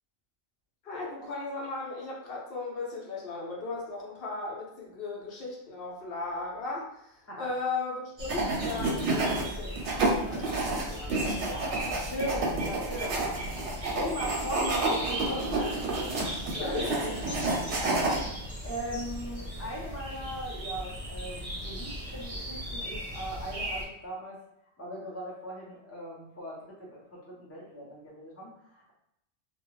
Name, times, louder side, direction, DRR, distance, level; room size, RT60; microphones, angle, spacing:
voice 1, 0.8-6.9 7.4-11.4 16.6-17.0, left 3 dB, 60° left, -3 dB, 0.9 m, -36 dB
sound 1, 8.2-23.8, equal, 40° right, 0.6 m, -38 dB
sound 2, 8.3-9.4 9.8-18.2, right 3 dB, 90° right, 1.0 m, -30 dB
voice 2, 11.0-13.3 13.7-24.4 24.8-28.9, equal, 15° left, -5 dB, 0.6 m, -39 dB
2.4 x 2.2 x 3.1 m, 0.82 s
omnidirectional pair, 1.2 m